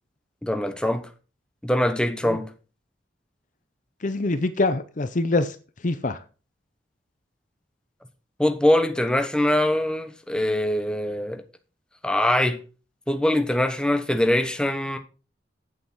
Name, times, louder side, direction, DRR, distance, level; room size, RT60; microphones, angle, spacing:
voice 1, 0.4-1.0 1.6-2.5 8.4-11.4 12.0-12.6 13.1-15.0, left 1 dB, 5° left, 1.0 m, -23 dB
voice 2, 4.0-5.6 5.8-6.2, left 2 dB, 40° left, 0.6 m, -24 dB
8.8 x 7.7 x 5.6 m
head